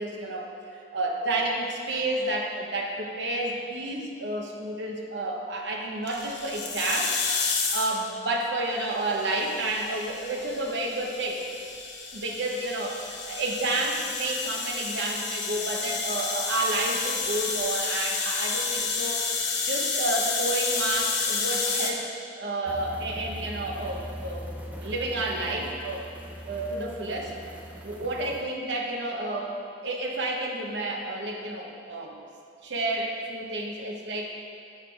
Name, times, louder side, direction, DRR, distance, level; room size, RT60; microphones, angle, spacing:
voice 1, 0.0-7.1 7.5-11.4 12.1-19.3 19.6-22.1 22.4-24.5 24.8-26.0 26.4-27.3 27.8-29.5 29.8-32.1 32.6-34.3, right 2 dB, 80° right, 0 dB, 1.0 m, -30 dB
sound 1, 6.1-8.0 9.1-21.9, left 4 dB, 85° left, 0.9 m, -30 dB
sound 2, 22.7-28.4, equal, 10° right, 0.6 m, -40 dB
8.0 x 5.8 x 4.5 m, 2.4 s
head